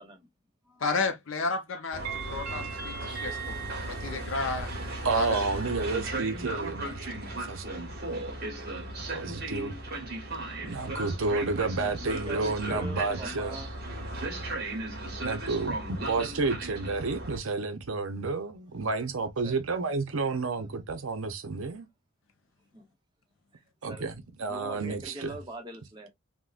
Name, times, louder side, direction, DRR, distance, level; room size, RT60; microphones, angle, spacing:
voice 1, 0.8-2.0 2.3-3.4 3.9-4.7 5.1-5.4, left 4 dB, 60° left, 0.6 m, -31 dB
voice 2, 1.5-2.1 3.0-3.3 10.1-14.4 19.4-19.6 20.2-20.6 22.7-22.9 23.5-24.1 24.5-26.1, equal, 20° right, 0.8 m, -44 dB
Train, 1.9-17.4, right 2 dB, 45° right, 1.1 m, -36 dB
voice 3, 5.0-7.6 9.1-9.7 10.7-13.6 15.2-21.9 23.8-25.3, right 3 dB, 65° right, 0.6 m, -31 dB
3.5 x 2.1 x 2.4 m
head